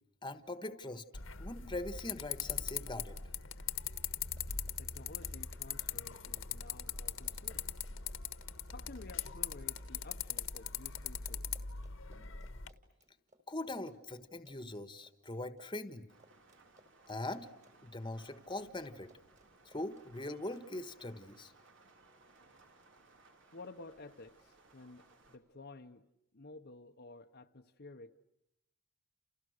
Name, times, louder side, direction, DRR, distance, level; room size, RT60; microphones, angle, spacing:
voice 1, 0.2-1.0 1.4-3.2 13.5-16.1 17.1-17.5 17.8-19.1 19.6-21.5, left 2 dB, 25° left, 1.5 m, -42 dB
sound 1, 1.1-12.7, left 8 dB, 75° left, 1.6 m, -41 dB
Run, 4.2-20.6, right 1 dB, 40° right, 4.7 m, -67 dB
voice 2, 4.8-7.7 8.7-11.5 23.5-26.0 26.3-28.1, left 3 dB, 55° left, 1.1 m, -53 dB
sound 2, 16.1-25.4, right 3 dB, 65° right, 3.5 m, -64 dB
30.0 x 29.0 x 6.6 m
head